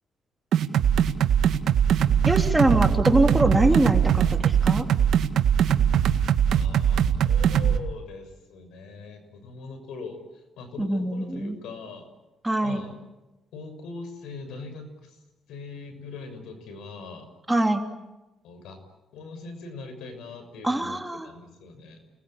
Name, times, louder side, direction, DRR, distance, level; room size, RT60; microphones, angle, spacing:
sound 1, 0.5-7.8, right 9 dB, 75° right, 1.9 m, -21 dB
voice 1, 2.2-4.8 10.8-11.6 12.4-12.8 17.5-17.8 20.6-21.3, right 1 dB, 10° right, 4 dB, 3.3 m, -23 dB
voice 2, 6.5-12.1 12.6-12.9 13.5-15.2 15.5-17.3 18.4-18.8 19.1-22.0, left 4 dB, 85° left, 8 dB, 6.3 m, -41 dB
29.5 x 20.5 x 8.9 m, 1.0 s
cardioid pair, 90°, 0 cm